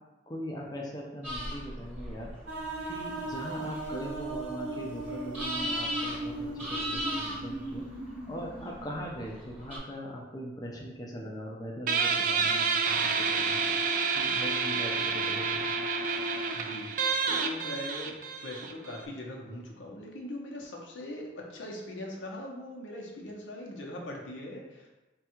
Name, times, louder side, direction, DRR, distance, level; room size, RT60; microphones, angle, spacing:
voice 1, 0.3-2.3 2.9-7.8 8.3-13.7 14.1-15.8, equal, 20° left, -1 dB, 0.5 m, -40 dB
sound 1, 1.2-9.8, equal, 10° right, 1.0 m, -39 dB
sound 2, 2.5-9.2, right 2 dB, 80° right, 0.7 m, -38 dB
Guitar, 11.9-19.1, right 5 dB, 45° right, 0.3 m, -29 dB
voice 2, 16.5-18.2 18.4-24.9, left 1 dB, 85° left, -1 dB, 0.8 m, -41 dB
3.5 x 2.3 x 4.4 m, 1.1 s
head